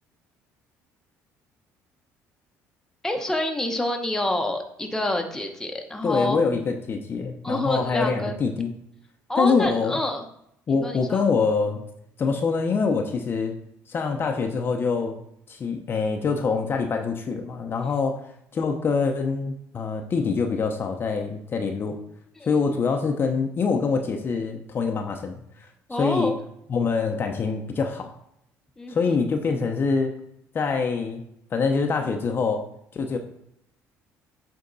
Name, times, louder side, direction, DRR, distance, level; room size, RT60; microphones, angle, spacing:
voice 1, 3.0-6.4 7.4-8.3 9.3-10.2 10.7-11.3 22.4-22.5 25.9-26.4 28.8-29.2, left 1 dB, 10° left, 2 dB, 1.0 m, -27 dB
voice 2, 6.0-8.7 9.4-10.0 10.7-11.8 12.2-13.5 13.9-15.1 15.5-18.2 18.5-22.0 22.5-25.4 26.0-26.3 26.7-28.1 28.9-30.1 30.5-31.2 31.5-32.6 32.9-33.2, left 5 dB, 40° left, 3 dB, 0.7 m, -25 dB
8.3 x 3.5 x 4.0 m, 0.75 s
cardioid pair, 105°, 6 cm